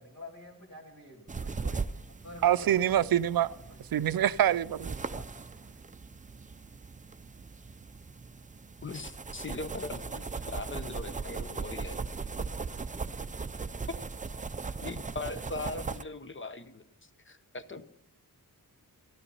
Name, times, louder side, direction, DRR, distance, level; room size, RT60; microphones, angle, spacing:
voice 1, 0.0-1.8 2.2-3.1 3.5-3.8 5.1-5.2, left 2 dB, 50° left, 2.7 m, -47 dB
sound 1, 1.3-16.0, right 4 dB, 20° right, 0.5 m, -39 dB
voice 2, 2.4-3.5 3.9-4.9, right 11 dB, 75° right, 0.5 m, -25 dB
voice 3, 8.8-12.0 13.9-14.0 14.8-16.8 17.3-17.8, left 3 dB, 35° left, 0.8 m, -40 dB
12.0 x 12.0 x 5.5 m
wide cardioid pair, 95°, 36 cm